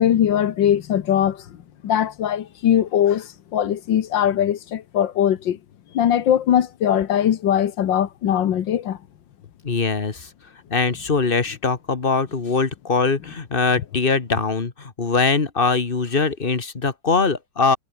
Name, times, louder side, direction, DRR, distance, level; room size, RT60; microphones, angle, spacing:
voice 1, 0.0-1.6 1.8-5.6 5.9-9.0, left 10 dB, 65° left, 1.7 m, -20 dB
voice 2, 9.6-10.3 10.7-17.8, left 4 dB, 30° left, 1.6 m, -22 dB
omnidirectional pair, 2.3 m